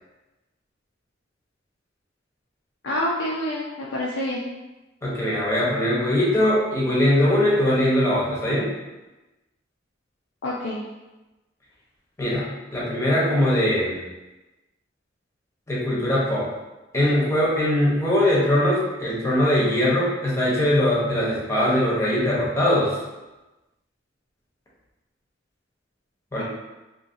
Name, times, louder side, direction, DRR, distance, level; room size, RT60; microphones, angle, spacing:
voice 1, 2.8-4.4 10.4-10.8 26.4-26.5, left 1 dB, 70° left, -4 dB, 0.4 m, -27 dB
voice 2, 5.0-8.7 12.2-14.0 15.7-16.5 16.9-23.0 26.3-26.4, left 1 dB, 15° left, -7 dB, 0.8 m, -21 dB
2.7 x 2.7 x 2.6 m, 1.1 s
head